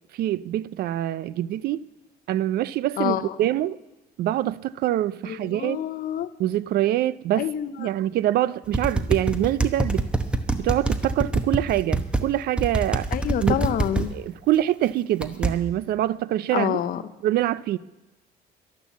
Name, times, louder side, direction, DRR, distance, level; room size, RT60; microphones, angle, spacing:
voice 1, 0.1-1.9 2.3-3.8 4.2-5.8 6.4-7.5 7.8-10.1 10.5-13.1 13.4-13.6 14.0-16.8 17.2-17.8, right 13 dB, 65° right, 0.4 m, -25 dB
voice 2, 3.0-3.3 5.3-6.3 7.4-7.7 13.1-14.1 16.5-17.0, left 10 dB, 60° left, 0.7 m, -27 dB
sound 1, 8.7-12.2 12.6-14.1 15.2-15.5, right 2 dB, 5° right, 1.0 m, -24 dB
11.5 x 11.5 x 7.2 m
cardioid pair, 110°, 17 cm